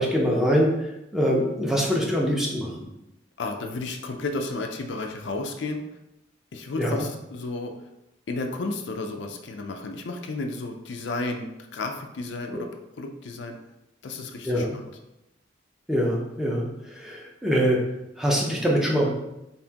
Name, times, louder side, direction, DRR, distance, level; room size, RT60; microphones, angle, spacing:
voice 1, 0.0-2.7 6.8-7.0 12.5-12.6 14.4-14.7 15.9-17.8 18.2-19.1, equal, ahead, -3 dB, 0.6 m, -24 dB
voice 2, 3.4-5.8 6.5-7.7 8.3-12.7 13.0-13.6 14.0-14.9, left 2 dB, 60° left, 4 dB, 0.4 m, -32 dB
4.2 x 3.6 x 2.8 m, 0.90 s
head